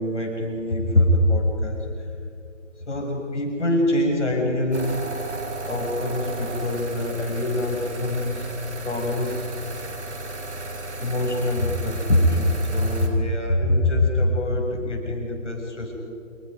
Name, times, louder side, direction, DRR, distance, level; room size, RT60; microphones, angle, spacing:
voice 1, 0.0-1.8 2.9-5.0 5.6-8.5 8.8-9.4 11.0-15.9, left 1 dB, 60° left, 0 dB, 7.3 m, -23 dB
sound 1, 4.7-13.1, right 2 dB, 55° right, 3.6 m, -34 dB
28.0 x 24.5 x 5.4 m, 2.4 s
figure-of-eight pair, 150°, 39 cm